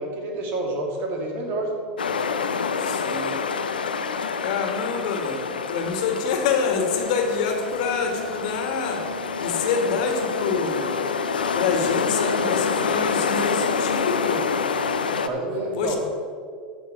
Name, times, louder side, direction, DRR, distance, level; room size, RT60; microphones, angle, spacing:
voice 1, 0.0-1.8 15.2-16.0, right 2 dB, 45° right, 1 dB, 2.9 m, -28 dB
sound 1, 2.0-15.3, left 5 dB, 85° left, 0.7 m, -27 dB
voice 2, 2.8-3.4 4.4-9.0 9.4-10.8 11.5-14.4 15.8-16.0, left 5 dB, 60° left, 4 dB, 2.1 m, -26 dB
12.5 x 6.5 x 7.0 m, 2.2 s
hypercardioid pair, 90°, 5 cm